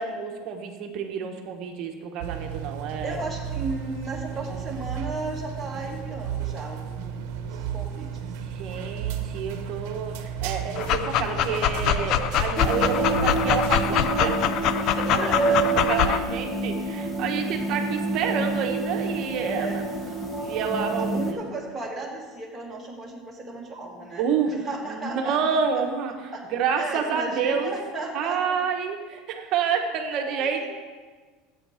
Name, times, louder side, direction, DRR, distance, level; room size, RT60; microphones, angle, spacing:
voice 1, 0.0-3.2 8.5-15.5 15.9-19.8 20.4-21.4 24.2-24.6 24.8-27.7 28.1-30.7, right 6 dB, 40° right, 4 dB, 1.2 m, -29 dB
sound 1, 2.2-14.1, right 8 dB, 65° right, 1.0 m, -33 dB
voice 2, 3.0-8.1 15.1-15.8 19.6-19.8 21.1-25.4 26.3-26.4 26.7-28.6 30.2-30.7, right 2 dB, 5° right, -4 dB, 1.8 m, -35 dB
Dog, 10.7-16.2, left 9 dB, 40° left, 0.4 m, -24 dB
sound 2, 12.6-21.3, right 2 dB, 15° left, 1.1 m, -28 dB
12.0 x 8.4 x 5.0 m, 1.4 s
cardioid pair, 170°, 0 cm